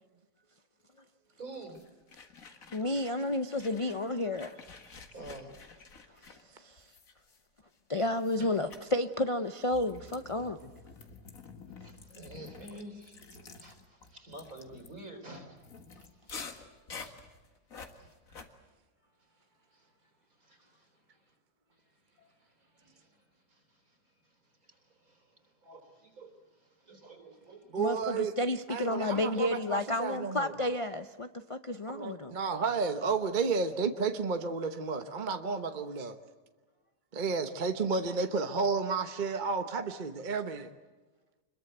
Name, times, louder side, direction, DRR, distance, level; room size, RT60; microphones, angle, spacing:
voice 1, 1.4-1.8 3.1-3.2 4.1-4.2 5.1-5.6 8.4-8.8 10.6-10.8 11.8-15.6 15.9-16.4 17.0-17.2 17.9-18.2 19.7-19.9 20.4-21.2 21.7-27.7, right 1 dB, 55° right, 4.3 m, -50 dB
sound 1, 1.7-3.2 3.5-7.7 8.2-8.4 8.7-8.9 9.6-18.5, left 4 dB, 55° left, 2.1 m, -49 dB
voice 2, 2.7-4.6 6.6-6.8 7.9-10.7 27.8-32.4, left 1 dB, 40° left, 0.4 m, -31 dB
voice 3, 27.7-28.3 28.7-30.5 31.9-36.2 37.1-40.7, right 4 dB, 35° right, 1.0 m, -32 dB
26.0 x 22.0 x 7.9 m
omnidirectional pair, 1.7 m